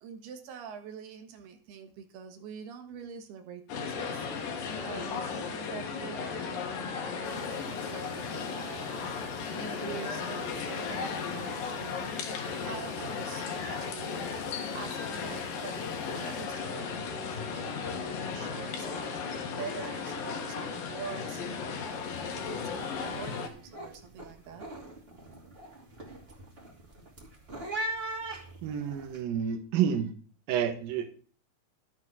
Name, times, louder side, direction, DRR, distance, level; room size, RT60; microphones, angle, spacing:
voice 1, 0.0-24.7, right 7 dB, 90° right, 5 dB, 3.5 m, -46 dB
sound 1, 3.7-23.5, left 5 dB, 70° left, 3.2 m, -35 dB
sound 2, 7.2-16.5, left 7 dB, 85° left, 3.6 m, -49 dB
sound 3, 21.8-22.1 22.4-22.8 23.2-29.2, right 1 dB, 20° right, 2.1 m, -40 dB
voice 2, 28.6-30.1 30.5-31.1, right 8 dB, 75° right, 6 dB, 2.8 m, -29 dB
12.0 x 8.2 x 6.0 m, 0.42 s
omnidirectional pair, 4.4 m